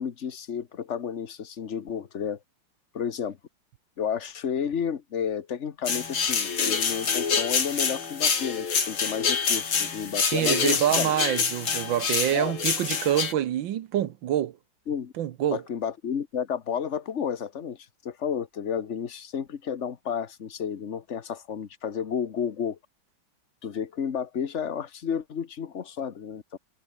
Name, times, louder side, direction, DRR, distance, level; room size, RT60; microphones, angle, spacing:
voice 1, 0.0-2.4 2.9-3.4 4.0-11.1 12.3-12.5 14.9-15.1 15.5-22.8 23.6-26.6, left 7 dB, 40° left, 1.4 m, -31 dB
sound 1, 5.9-13.3, left 6 dB, 75° left, 3.5 m, -26 dB
voice 2, 10.3-14.6 15.2-15.6, right 11 dB, 70° right, 1.6 m, -26 dB
omnidirectional pair, 2.3 m